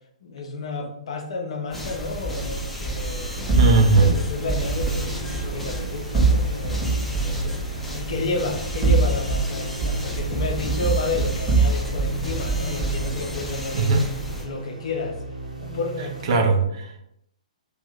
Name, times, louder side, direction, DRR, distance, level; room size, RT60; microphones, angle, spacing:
voice 1, 0.2-6.9 7.2-7.6 7.9-13.9 14.3-15.2 15.6-16.3, left 3 dB, 50° left, 4 dB, 0.5 m, -31 dB
sound 1, 1.7-14.5, equal, 5° left, 0.5 m, -33 dB
sound 2, 3.5-5.0 6.1-7.5 8.6-9.5 9.8-12.2 12.5-13.1, right 3 dB, 20° right, 0.9 m, -22 dB
sound 3, 3.5-16.4, right 3 dB, 80° right, 0.7 m, -37 dB
voice 2, 3.6-4.1 13.7-14.0 16.3-17.0, right 3 dB, 40° right, 3 dB, 0.5 m, -18 dB
2.6 x 2.2 x 3.5 m, 0.77 s
figure-of-eight pair, 120°, 4 cm